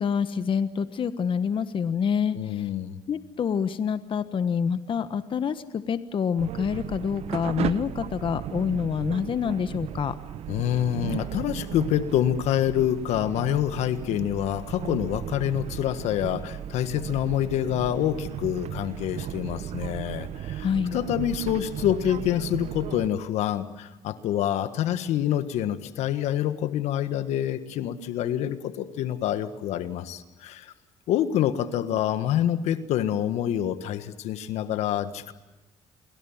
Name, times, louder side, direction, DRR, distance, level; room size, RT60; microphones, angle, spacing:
voice 1, 0.0-2.7 3.1-10.2 20.6-21.0, left 7 dB, 50° left, 12 dB, 1.3 m, -27 dB
voice 2, 2.3-3.0 10.5-30.7 31.1-35.3, left 11 dB, 75° left, 11 dB, 1.5 m, -27 dB
sound 1, 6.4-23.1, right 11 dB, 65° right, 0.9 m, -35 dB
29.0 x 22.0 x 7.3 m, 1.0 s
supercardioid pair, 80°, 11 cm